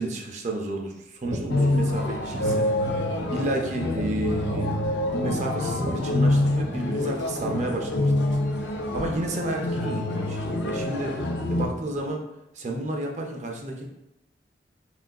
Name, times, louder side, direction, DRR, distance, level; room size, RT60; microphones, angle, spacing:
voice 1, 0.0-2.9 3.3-4.8 5.1-11.2 11.5-12.3 12.5-13.9, right 2 dB, 40° right, 1 dB, 0.4 m, -31 dB
sound 1, 1.2-12.1, equal, 80° right, 0.6 m, -37 dB
sound 2, 1.5-11.7, left 1 dB, 75° left, 0.4 m, -26 dB
3.6 x 2.3 x 2.2 m, 0.86 s
head